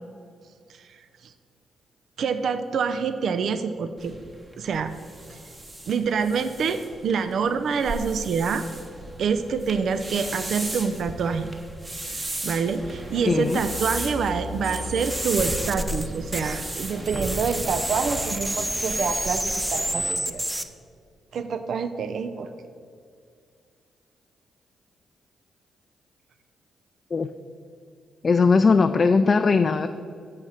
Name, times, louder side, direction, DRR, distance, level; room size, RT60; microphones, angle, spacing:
voice 1, 0.7-1.3 2.2-4.2 4.6-4.9 5.3-5.4 5.9-8.6 9.2-11.5 12.4-20.4 21.3-22.5, right 5 dB, 65° right, 10 dB, 0.4 m, -26 dB
sound 1, 4.0-20.1, right 1 dB, 30° right, 1.3 m, -36 dB
sound 2, 12.6-15.4, equal, 50° right, 1.3 m, -37 dB
voice 2, 13.3-13.6 27.1-27.3 28.2-29.9, left 4 dB, 45° left, 8 dB, 0.3 m, -19 dB
sound 3, 14.6-16.8 17.0-20.6, right 1 dB, 10° right, 0.6 m, -29 dB
6.6 x 5.5 x 6.2 m, 2.2 s
hypercardioid pair, 45°, 0 cm